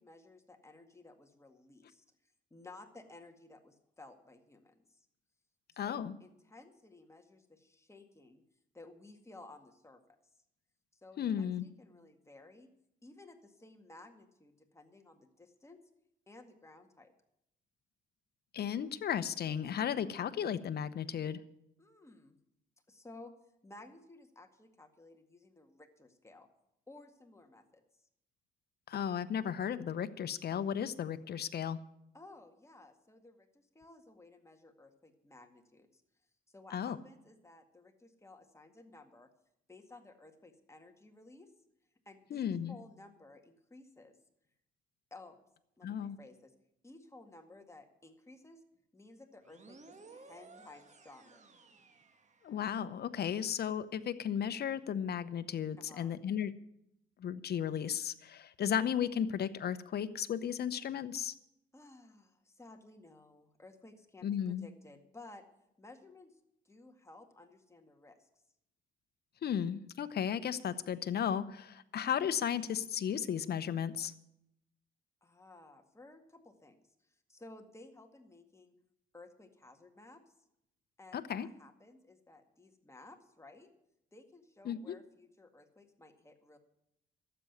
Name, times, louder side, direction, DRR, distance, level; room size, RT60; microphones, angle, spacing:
voice 1, 0.0-5.1 5.7-8.4 8.7-10.2 10.9-12.7 13.0-15.8 16.3-17.1 21.8-22.4 22.9-23.3 23.6-26.5 26.9-28.0 32.1-36.0 36.5-39.3 39.7-41.5 42.1-44.2 45.1-45.4 45.8-46.5 46.8-48.6 48.9-51.5 55.8-56.2 61.7-65.4 65.8-66.4 66.7-68.3 75.2-78.8 79.1-80.2 81.0-83.7 84.1-86.6, left 2 dB, 15° left, 5 dB, 2.0 m, -56 dB
voice 2, 5.8-6.1 11.2-11.6 18.5-21.4 28.9-31.8 36.7-37.0 42.3-42.8 45.8-46.2 52.4-56.5 57.2-61.3 64.2-64.7 69.4-74.1 81.1-81.5 84.6-85.0, left 8 dB, 55° left, 12 dB, 0.8 m, -35 dB
sound 1, 49.4-52.9, right 4 dB, 35° right, 1.7 m, -57 dB
12.5 x 7.9 x 9.4 m, 0.81 s
cardioid pair, 90°, 20 cm